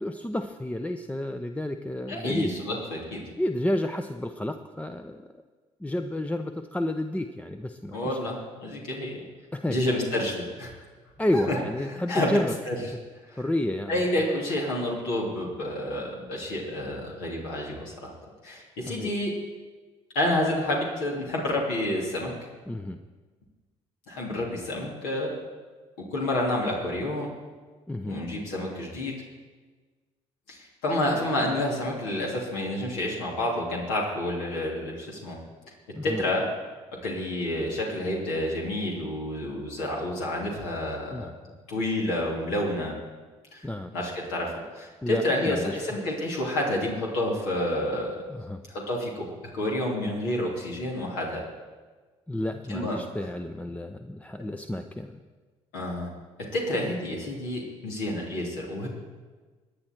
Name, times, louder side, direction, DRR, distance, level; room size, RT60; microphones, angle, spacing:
voice 1, 0.0-2.5 3.4-5.3 5.8-8.3 9.5-9.8 11.2-12.6 12.9-13.0 13.3-14.0 18.9-19.1 22.7-23.0 27.9-28.2 36.0-36.2 41.1-41.3 43.6-43.9 45.0-45.8 48.3-48.6 52.3-55.2, left 1 dB, 10° left, 7 dB, 0.7 m, -30 dB
voice 2, 2.1-3.2 7.9-9.3 9.7-10.7 11.3-11.6 12.1-12.3 12.7-12.8 13.3-13.4 13.9-18.1 18.4-19.3 20.1-22.3 24.1-25.4 26.1-27.3 28.1-29.2 30.5-35.4 36.0-36.5 37.0-43.0 43.5-43.7 43.9-48.2 48.7-49.3 49.5-51.4 52.7-53.0 55.7-56.1 56.5-58.9, left 1 dB, 70° left, -3 dB, 2.9 m, -29 dB
23.5 x 9.7 x 4.5 m, 1.4 s
figure-of-eight pair, 50°, 16 cm